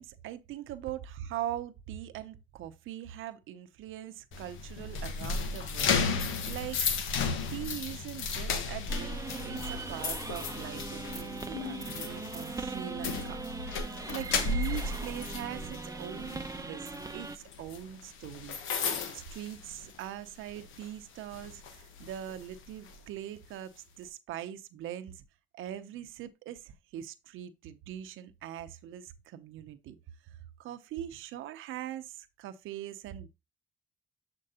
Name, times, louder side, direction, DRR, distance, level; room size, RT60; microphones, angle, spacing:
voice 1, 0.0-6.8 7.5-9.2 9.4-13.4 14.1-18.6 19.1-25.2 25.5-30.0 30.6-33.3, right 12 dB, 85° right, 0.7 m, -42 dB
sound 1, 4.3-20.2 20.6-20.8 21.3-23.0, left 5 dB, 85° left, 1.2 m, -34 dB
sound 2, 8.9-17.4, right 4 dB, 15° right, 0.7 m, -40 dB
7.7 x 4.5 x 2.8 m
cardioid pair, 90°, 20 cm